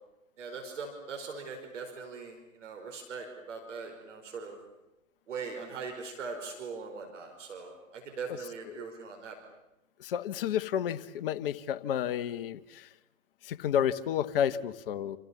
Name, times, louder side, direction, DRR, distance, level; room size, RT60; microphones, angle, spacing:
voice 1, 0.4-2.4 2.6-4.6 5.3-9.4, right 5 dB, 60° right, 3 dB, 5.2 m, -41 dB
voice 2, 8.3-8.8 10.0-12.9 13.4-15.2, left 9 dB, 45° left, 13 dB, 1.2 m, -31 dB
29.0 x 28.5 x 7.2 m, 0.95 s
figure-of-eight pair, 115°, 41 cm